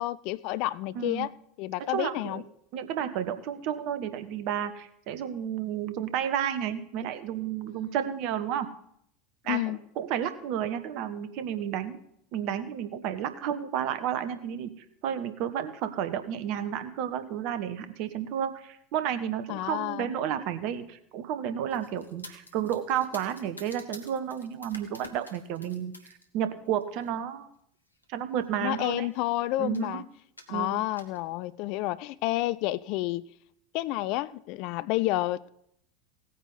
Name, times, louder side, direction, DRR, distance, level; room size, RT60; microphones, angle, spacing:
voice 1, 0.0-1.3 1.6-2.4 7.8-7.9 9.4-9.8 19.5-20.2 28.6-30.0 30.5-33.3 33.7-35.5, left 17 dB, 50° left, 18 dB, 0.4 m, -30 dB
voice 2, 0.9-1.3 1.9-2.4 2.7-8.7 9.4-12.0 12.3-27.5 28.1-29.1 29.6-30.0 30.5-30.8, right 9 dB, 50° right, 11 dB, 1.1 m, -32 dB
sound 1, 21.7-26.3 26.7-27.1 27.9-28.0 28.4-28.5 28.7-29.3 29.7-29.9 30.4-31.2, left 1 dB, 85° left, 1.2 m, -49 dB
17.0 x 9.3 x 4.1 m, 0.72 s
figure-of-eight pair, 75°, 0 cm